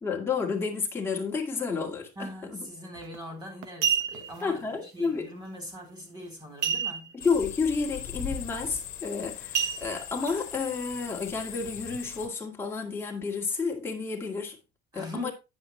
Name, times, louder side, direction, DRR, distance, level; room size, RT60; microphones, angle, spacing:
voice 1, 0.0-2.6 4.4-5.3 7.2-14.6 14.9-15.3, left 5 dB, 15° left, 2.0 m, -31 dB
voice 2, 2.2-7.1 14.9-15.3, equal, 25° right, 3.8 m, -41 dB
sound 1, 3.0-3.2 3.6-4.4 6.6-7.3 7.6-7.7 8.2-8.5 9.5-10.3 10.9-11.0, right 7 dB, 80° right, 1.1 m, -29 dB
Daytime - crickets in the woods, 7.2-12.3, left 10 dB, 55° left, 1.4 m, -40 dB
9.8 x 8.0 x 3.2 m
cardioid pair, 170°, 18 cm